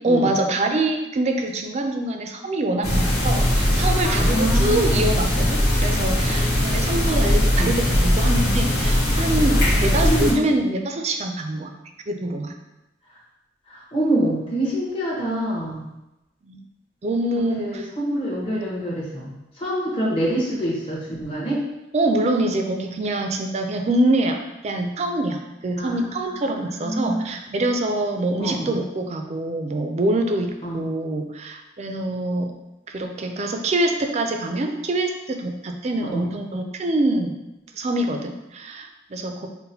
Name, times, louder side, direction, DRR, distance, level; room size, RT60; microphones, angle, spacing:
voice 1, 0.0-11.7 12.1-12.5 16.4-16.6 17.0-17.9 21.9-24.4 24.6-32.6 32.9-37.4 37.7-39.5, right 1 dB, 35° right, 4 dB, 0.4 m, -25 dB
sound 1, 2.8-10.3, left 1 dB, 60° left, 1.3 m, -20 dB
voice 2, 4.0-5.1 7.5-7.7 9.5-9.6 10.0-10.5 13.1-13.2 13.7-15.9 17.6-21.7 25.8-27.4 28.4-28.7 30.6-30.9 36.0-36.3, right 1 dB, 30° left, -6 dB, 1.0 m, -26 dB
5.7 x 2.1 x 2.7 m, 0.95 s
head